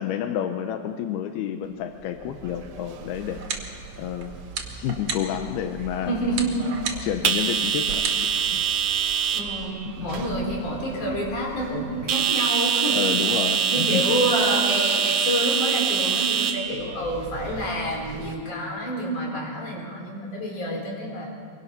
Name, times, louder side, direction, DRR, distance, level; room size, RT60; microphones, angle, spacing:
voice 1, 0.0-3.4 4.0-4.3 4.7-6.1 7.0-8.6 9.9-10.5 12.9-14.2, left 10 dB, 85° left, 6 dB, 2.8 m, -30 dB
sound 1, 2.2-18.3, right 7 dB, 70° right, 1.5 m, -27 dB
sound 2, 3.1-9.7, right 6 dB, 50° right, 3.0 m, -37 dB
voice 2, 6.1-6.6 9.3-13.0 13.5-21.3, equal, 55° left, -1 dB, 5.9 m, -28 dB
24.5 x 24.0 x 6.0 m, 2.2 s
omnidirectional pair, 4.5 m